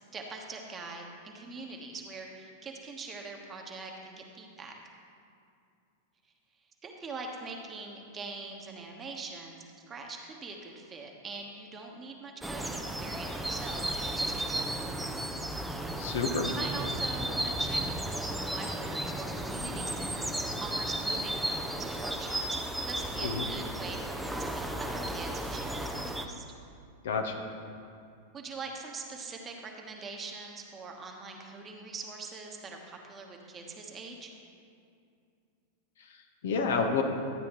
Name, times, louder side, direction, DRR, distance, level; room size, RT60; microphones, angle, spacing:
voice 1, 0.0-4.8 6.6-14.9 16.5-26.4 28.3-34.3, right 3 dB, 25° right, 1 dB, 1.3 m, -43 dB
sound 1, 12.4-26.3, right 1 dB, 5° right, 0.6 m, -34 dB
voice 2, 16.0-16.5 23.2-23.5 27.0-27.4 36.4-37.0, left 5 dB, 70° left, 4 dB, 1.0 m, -29 dB
12.5 x 8.3 x 3.1 m, 2.4 s
hypercardioid pair, 95°, 0 cm